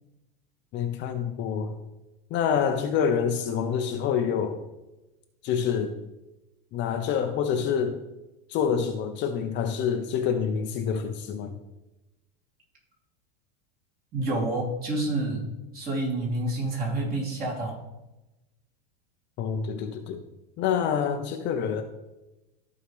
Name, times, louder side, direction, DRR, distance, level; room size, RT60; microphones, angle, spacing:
voice 1, 0.7-1.7 2.3-4.6 5.4-6.0 6.7-8.0 8.5-11.6 19.4-20.2 20.6-21.8, left 7 dB, 40° left, 5 dB, 0.7 m, -27 dB
voice 2, 14.1-15.5 15.7-17.8, right 2 dB, 30° right, -3 dB, 3.2 m, -28 dB
14.5 x 4.8 x 3.3 m, 1.0 s
supercardioid pair, 135°, 30 cm